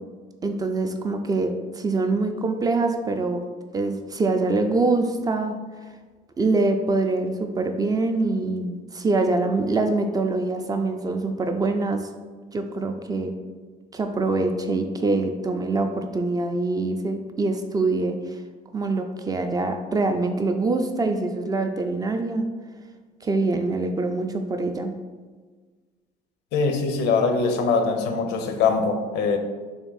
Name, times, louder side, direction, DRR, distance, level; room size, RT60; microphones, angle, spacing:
voice 1, 0.4-3.4 3.7-5.6 6.4-12.0 12.5-13.3 13.9-18.2 18.7-22.5 23.2-24.9, right 3 dB, 20° right, 6 dB, 0.3 m, -24 dB
voice 2, 26.5-29.4, left 4 dB, 85° left, 5 dB, 0.5 m, -22 dB
3.5 x 2.6 x 3.9 m, 1.4 s
cardioid pair, 110°, 17 cm